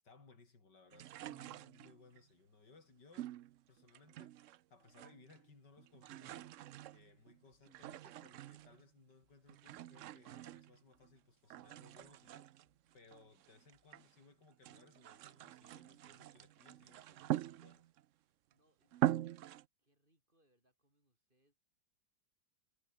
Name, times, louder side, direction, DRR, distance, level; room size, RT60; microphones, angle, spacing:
voice 1, 0.0-3.3 3.7-6.6 6.9-12.5 12.9-17.8, left 4 dB, 70° left, 4.7 m, -64 dB
sound 1, 0.9-2.2 3.1-4.6 4.9-5.5 5.8-8.9 9.5-11.1 11.5-14.1 14.5-18.0 18.5-18.6 18.9-19.6, right 13 dB, 85° right, 0.6 m, -43 dB
sound 2, 8.6-14.2, right 2 dB, 50° right, 7.0 m, -85 dB
voice 2, 18.5-19.5 19.8-21.6, right 1 dB, 25° right, 8.0 m, -78 dB
omnidirectional pair, 1.9 m